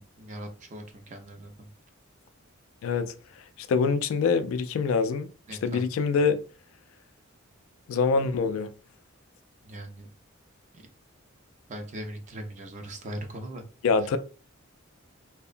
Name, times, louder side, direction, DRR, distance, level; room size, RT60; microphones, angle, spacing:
voice 1, 0.0-1.7 5.5-5.8 9.6-10.1 10.7-10.9 11.7-13.6, right 1 dB, 35° right, 0.5 m, -40 dB
voice 2, 2.8-3.1 3.6-5.3 5.6-6.4 7.9-8.7 13.8-14.2, left 5 dB, 75° left, 0.3 m, -25 dB
2.8 x 2.0 x 2.4 m
head